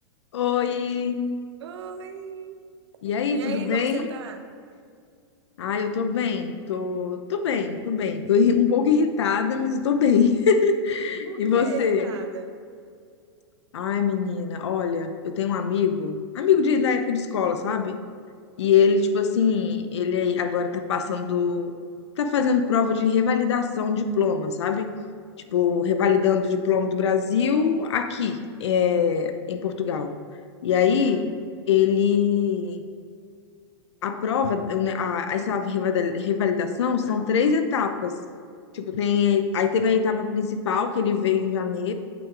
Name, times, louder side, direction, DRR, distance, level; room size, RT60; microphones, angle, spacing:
voice 1, 0.3-1.2 3.0-4.1 5.6-12.1 13.7-18.0 18.6-21.7 22.2-24.9 25.5-30.1 30.6-31.3 31.7-32.9 34.0-38.1 38.7-41.9, left 6 dB, 90° left, 8 dB, 0.7 m, -23 dB
voice 2, 1.6-2.6 3.3-4.4 11.2-12.5 31.0-31.3, right 7 dB, 80° right, 7 dB, 0.8 m, -36 dB
8.3 x 4.7 x 3.8 m, 2.2 s
supercardioid pair, 160°, 14 cm